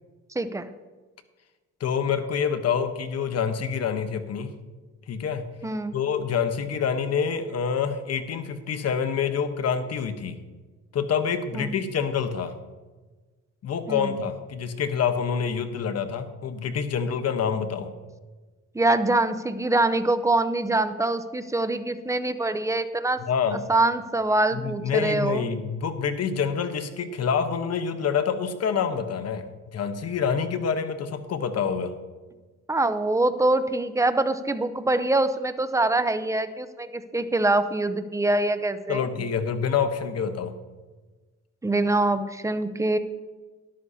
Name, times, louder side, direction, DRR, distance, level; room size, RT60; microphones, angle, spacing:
voice 1, 0.3-0.7 5.6-6.0 11.5-11.7 13.9-14.2 18.7-23.2 23.7-25.4 32.7-39.1 41.6-43.0, right 2 dB, 10° right, 10 dB, 0.7 m, -24 dB
voice 2, 1.8-4.5 5.1-5.5 5.9-10.4 10.9-12.5 13.6-17.9 23.3-23.6 24.5-29.5 29.7-32.0 38.9-40.5, left 6 dB, 55° left, 9 dB, 1.1 m, -27 dB
13.0 x 11.5 x 2.8 m, 1.3 s
cardioid pair, 90°, 30 cm